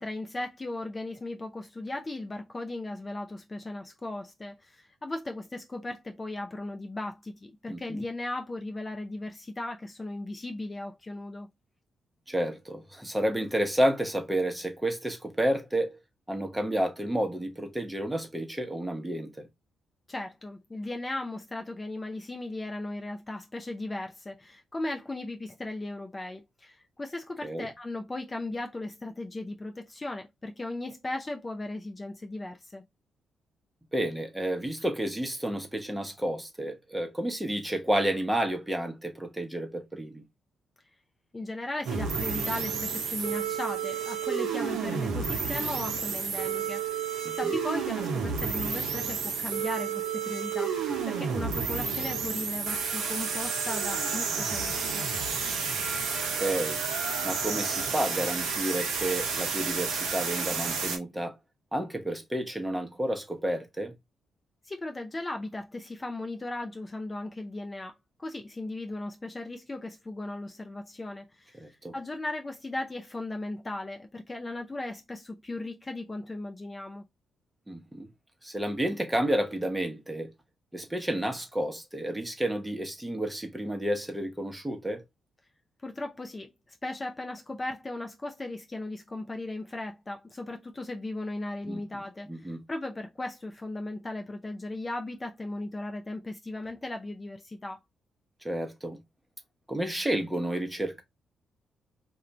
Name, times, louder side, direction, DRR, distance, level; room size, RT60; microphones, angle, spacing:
voice 1, 0.0-11.5 20.1-32.8 41.3-55.1 64.6-77.0 85.8-97.8, left 2 dB, 30° left, 0.5 m, -37 dB
voice 2, 7.7-8.0 12.3-16.0 16.3-19.5 27.4-27.7 33.9-40.2 47.2-47.6 56.3-56.8 57.2-61.3 61.7-63.9 71.6-71.9 77.7-78.1 78.4-80.3 80.7-85.0 91.7-91.8 92.3-92.6 98.4-99.0 99.7-101.0, right 1 dB, 10° right, 0.8 m, -30 dB
sound 1, 41.9-61.0, right 6 dB, 75° right, 0.5 m, -31 dB
2.4 x 2.2 x 3.0 m
hypercardioid pair, 40°, 0 cm